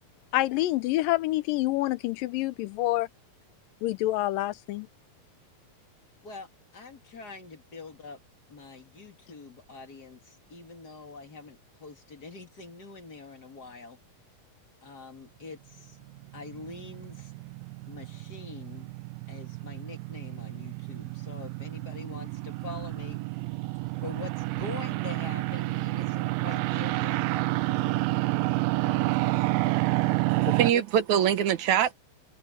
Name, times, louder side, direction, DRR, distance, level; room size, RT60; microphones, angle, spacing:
voice 1, 0.3-3.1 3.8-4.9 30.5-30.8, left 16 dB, 80° left, 2.3 m, -27 dB
voice 2, 6.2-8.2 8.5-14.0 14.8-16.0 16.3-17.3 17.9-18.9 19.3-23.2 24.0-28.1 28.8-29.7, left 4 dB, 30° left, 2.5 m, -45 dB
sound 1, 16.1-30.7, right 20 dB, 80° right, 2.3 m, -29 dB
voice 3, 30.3-31.9, right 10 dB, 65° right, 2.2 m, -24 dB
omnidirectional pair, 4.3 m